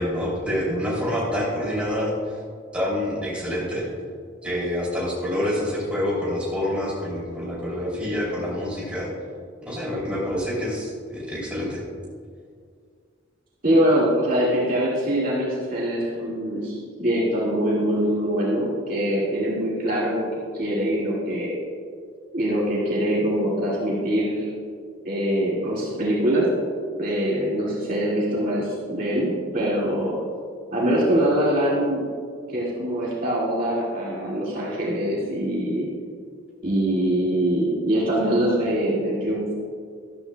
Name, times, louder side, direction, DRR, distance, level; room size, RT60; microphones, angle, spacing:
voice 1, 0.0-2.4 2.7-3.9 4.4-9.1 9.7-11.8, left 1 dB, 5° right, -6 dB, 2.9 m, -27 dB
voice 2, 13.6-20.2 20.5-21.6 22.3-24.5 25.0-26.5 27.0-30.2 30.7-32.0 32.5-35.9 36.6-39.5, right 1 dB, 45° right, -7 dB, 2.1 m, -23 dB
13.0 x 13.0 x 2.3 m, 2.1 s
head